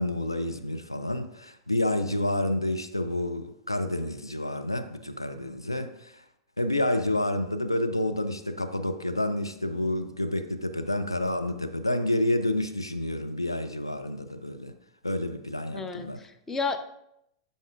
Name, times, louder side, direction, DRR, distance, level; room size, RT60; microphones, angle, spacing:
voice 1, 0.0-6.2 6.6-14.7 15.0-16.2, left 1 dB, 90° left, 8 dB, 0.5 m, -29 dB
voice 2, 15.7-16.8, left 4 dB, 15° left, 8 dB, 0.6 m, -32 dB
12.5 x 5.4 x 2.5 m, 0.78 s
figure-of-eight pair, 95°, 2 cm